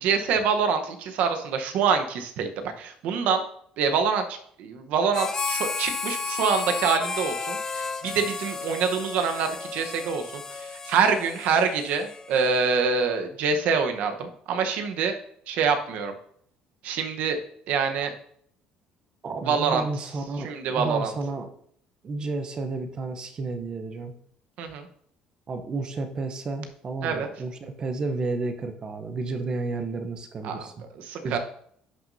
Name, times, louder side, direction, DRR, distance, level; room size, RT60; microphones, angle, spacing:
voice 1, 0.0-3.4 3.8-15.2 15.5-16.1 16.8-17.4 17.7-18.1 19.5-19.8 20.4-21.1 24.6-24.9 27.0-27.3 30.4-30.7 30.9-31.4, right 6 dB, 65° right, 6 dB, 1.0 m, -25 dB
Harmonica, 5.1-12.9, left 4 dB, 20° left, 0.6 m, -33 dB
voice 2, 19.2-21.5 22.0-24.1 25.5-30.8 31.2-31.4, right 3 dB, 30° right, 7 dB, 0.8 m, -31 dB
11.0 x 6.0 x 2.7 m, 0.65 s
cardioid pair, 145°, 3 cm